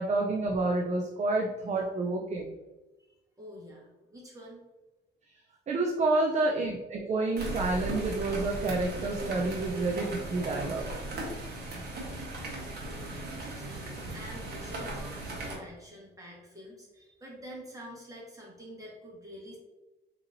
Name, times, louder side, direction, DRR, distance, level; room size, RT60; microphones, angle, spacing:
voice 1, 0.0-2.5 5.7-10.8 11.7-11.8, right 2 dB, 35° right, 1 dB, 0.4 m, -29 dB
voice 2, 3.1-4.6 12.9-19.6, equal, 15° right, -4 dB, 1.4 m, -47 dB
sound 1, 7.4-15.6, right 2 dB, 55° right, 1.1 m, -37 dB
3.8 x 2.9 x 2.6 m, 1.1 s
cardioid pair, 90°, 20 cm